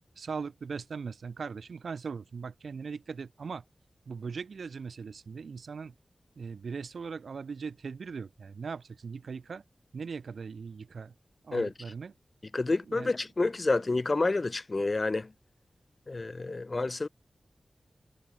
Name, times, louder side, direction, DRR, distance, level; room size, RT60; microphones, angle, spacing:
voice 1, 0.2-3.6 4.1-5.9 6.4-9.6 9.9-11.1 11.4-12.1 12.9-13.1, right 5 dB, 90° right, 2.9 m, -39 dB
voice 2, 12.5-15.3 16.1-17.1, left 3 dB, 45° left, 1.5 m, -29 dB
wide cardioid pair, 65°, 0 cm